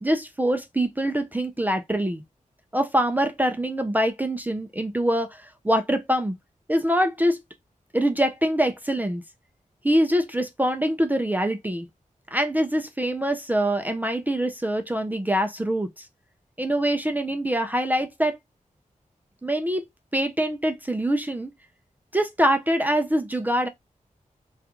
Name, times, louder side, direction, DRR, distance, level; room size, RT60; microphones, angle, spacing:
voice 1, 0.0-2.2 2.7-6.3 6.7-7.4 7.9-9.2 9.8-11.9 12.3-16.1 16.6-18.4 19.4-19.8 20.1-21.5 22.1-23.7, right 1 dB, 10° right, 0.4 m, -24 dB
3.6 x 2.4 x 2.8 m
wide cardioid pair, 110°, 14 cm